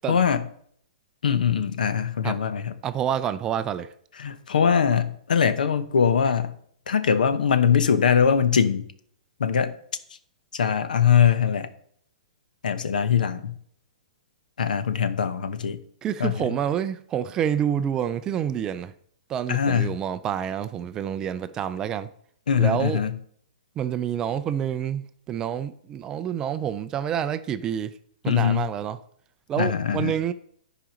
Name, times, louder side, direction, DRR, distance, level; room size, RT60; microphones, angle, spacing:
voice 1, 0.1-0.4 1.2-2.7 4.2-6.5 6.9-8.9 9.4-9.7 10.5-11.7 12.6-13.5 14.6-15.8 16.2-16.4 19.5-19.9 22.5-23.1 28.3-28.7 29.6-30.1, left 7 dB, 85° left, 0.9 m, -22 dB
voice 2, 2.8-3.9 16.0-18.9 19.3-22.1 22.6-23.0 23.8-27.9 28.2-29.0 29.5-30.3, right 9 dB, 15° right, 0.3 m, -28 dB
10.5 x 5.0 x 5.1 m
hypercardioid pair, 160°, 4 cm